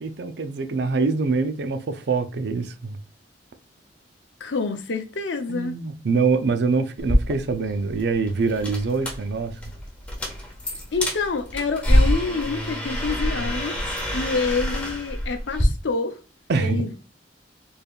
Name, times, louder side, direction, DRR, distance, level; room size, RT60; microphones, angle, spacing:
voice 1, 0.0-3.0 5.5-9.5 16.5-16.8, right 4 dB, 65° right, 0.5 m, -24 dB
voice 2, 4.4-5.7 10.9-13.8 14.1-16.2 16.6-17.0, left 4 dB, 90° left, 0.7 m, -27 dB
sound 1, 7.0-15.7, equal, 5° left, 1.1 m, -26 dB
4.4 x 3.4 x 2.4 m
head